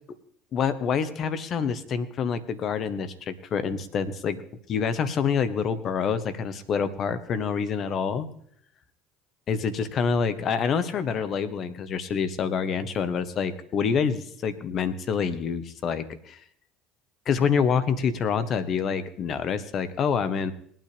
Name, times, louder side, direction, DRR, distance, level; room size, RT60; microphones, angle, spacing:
voice 1, 0.5-4.4 4.7-8.3 9.5-16.4 17.2-20.5, left 6 dB, 50° left, 12 dB, 1.2 m, -27 dB
21.0 x 9.1 x 3.4 m, 0.65 s
hypercardioid pair, 70°, 0 cm